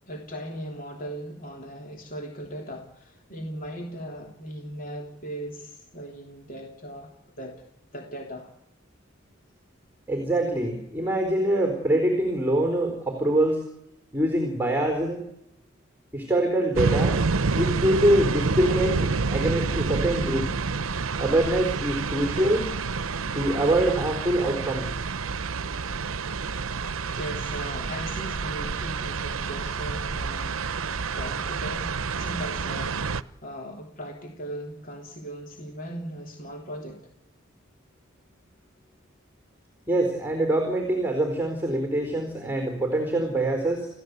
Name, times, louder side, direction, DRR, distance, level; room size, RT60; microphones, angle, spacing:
voice 1, 0.1-7.6 7.9-8.5 27.1-30.6 31.1-33.0 33.4-37.0, right 1 dB, 40° left, 1 dB, 3.2 m, -38 dB
voice 2, 10.1-13.7 14.1-15.2 16.1-17.2 17.5-20.6 21.2-22.7 23.3-25.0 39.9-43.9, right 1 dB, 10° right, 4 dB, 4.2 m, -24 dB
sound 1, 16.7-33.2, right 4 dB, 80° right, 0.8 m, -28 dB
29.5 x 16.0 x 8.2 m, 0.83 s
head